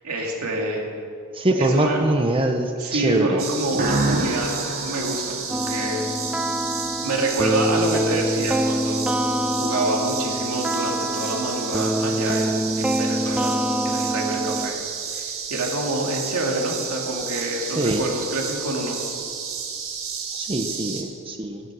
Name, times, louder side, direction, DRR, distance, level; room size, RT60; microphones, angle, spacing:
voice 1, 0.0-0.9 1.6-2.1 2.8-6.0 7.0-9.1 9.6-13.5 13.8-14.8 15.1-19.0, right 1 dB, 80° right, 0 dB, 2.6 m, -27 dB
voice 2, 1.4-3.4 17.8-18.0 20.4-21.6, right 1 dB, 25° right, 4 dB, 0.8 m, -23 dB
sound 1, 3.4-21.0, right 6 dB, 65° right, 1.9 m, -32 dB
sound 2, 3.7-6.4, right 2 dB, 40° right, 1.3 m, -27 dB
sound 3, 5.5-14.7, right 1 dB, 5° right, 0.3 m, -25 dB
13.0 x 12.5 x 6.2 m, 2.3 s
head